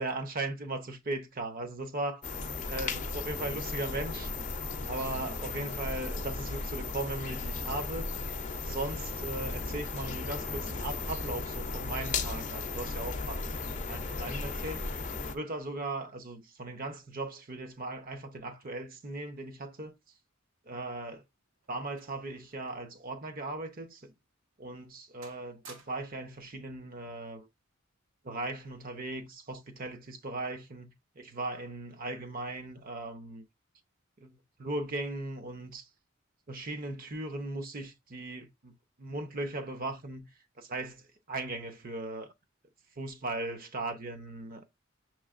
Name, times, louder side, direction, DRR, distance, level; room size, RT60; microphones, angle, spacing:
voice 1, 0.0-2.2 2.7-4.3 4.8-8.1 8.6-13.4 13.9-14.8 15.3-19.9 20.7-21.2 21.7-24.1 24.6-27.5 28.2-33.4 34.2-35.9 36.5-38.7 39.0-40.3 40.6-42.3 43.0-44.7, right 2 dB, 45° right, 0.7 m, -38 dB
sound 1, 2.2-15.4, left 4 dB, 40° left, 0.5 m, -36 dB
sound 2, 21.0-23.0 23.3-23.5 24.1-24.3 24.7-25.0 25.2-26.3 27.3-27.5, right 3 dB, 80° right, 1.2 m, -56 dB
6.2 x 3.1 x 2.4 m
head